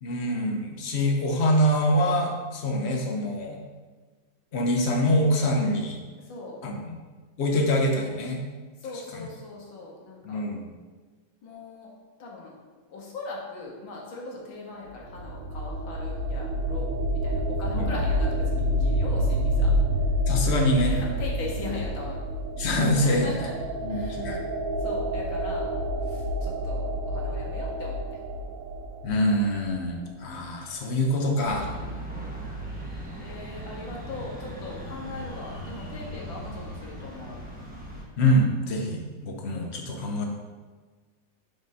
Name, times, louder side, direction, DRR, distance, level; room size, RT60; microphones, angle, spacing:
voice 1, 0.0-3.6 4.5-6.0 6.6-7.0 7.4-8.4 9.1-9.2 10.2-10.7 17.7-18.0 20.3-21.0 22.6-23.4 23.8-24.4 29.0-31.7 38.2-40.3, equal, 60° left, 2 dB, 0.7 m, -25 dB
voice 2, 6.2-6.6 8.8-10.5 11.4-11.9 12.2-12.5 12.9-16.9 17.2-19.7 20.9-22.2 23.0-23.6 23.9-24.2 24.8-25.7 26.0-28.2 29.9-30.2 31.7-32.1 33.2-37.4, left 3 dB, 85° left, -2 dB, 2.0 m, -39 dB
sound 1, 14.9-29.7, equal, 80° right, 1.3 m, -28 dB
sound 2, 31.4-38.0, right 1 dB, 10° right, 0.6 m, -38 dB
5.2 x 3.8 x 5.3 m, 1.4 s
omnidirectional pair, 2.1 m